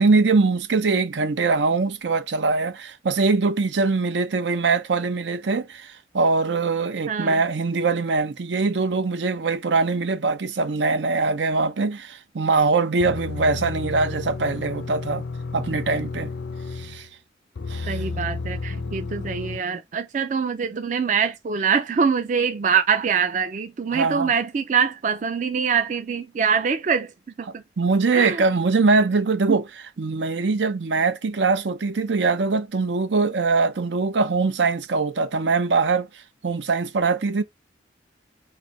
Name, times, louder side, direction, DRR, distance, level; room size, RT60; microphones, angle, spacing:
voice 1, 0.0-15.2 15.5-16.3 16.8-17.1 17.7-18.0 23.9-24.3 27.8-29.6 30.0-36.1 36.4-37.4, right 4 dB, 85° right, 0.6 m, -22 dB
voice 2, 7.1-7.4 17.9-27.1 27.4-27.6 28.1-28.4 29.5-29.6, right 6 dB, 45° right, 0.4 m, -24 dB
sound 1, 13.0-17.1 17.5-19.6, left 4 dB, 85° left, 0.5 m, -32 dB
3.2 x 2.7 x 3.8 m
head